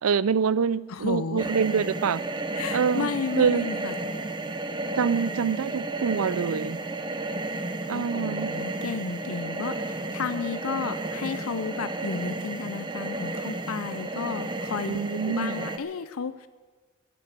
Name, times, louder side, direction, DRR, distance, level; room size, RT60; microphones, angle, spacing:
voice 1, 0.0-2.2 2.7-3.1 3.4-3.7 5.0-6.8 7.9-8.5 14.9-15.6, right 6 dB, 80° right, 19 dB, 0.5 m, -25 dB
voice 2, 0.9-1.5 2.5-3.9 7.5-7.6 7.9-16.5, left 5 dB, 75° left, 13 dB, 0.5 m, -33 dB
sound 1, 1.4-15.8, right 2 dB, 20° right, 0.9 m, -32 dB
14.5 x 10.5 x 8.5 m, 1.4 s
head